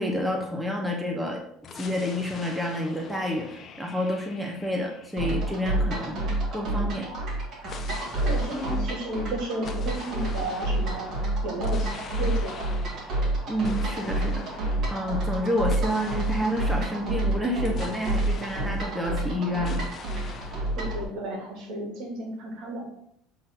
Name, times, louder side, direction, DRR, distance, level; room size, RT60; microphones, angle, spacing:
voice 1, 0.0-1.4 1.8-6.2 6.5-7.1 13.5-19.8, equal, 5° right, 0 dB, 1.0 m, -29 dB
sound 1, 1.6-6.3 7.6-19.3 19.6-20.7, left 6 dB, 35° left, 0.7 m, -44 dB
sound 2, 5.2-21.0, right 1 dB, 45° right, 2.3 m, -29 dB
voice 2, 8.2-11.1 11.4-12.7 20.8-22.9, right 1 dB, 65° right, 0 dB, 2.4 m, -33 dB
7.5 x 3.8 x 4.4 m, 0.72 s
cardioid pair, 130°, 0 cm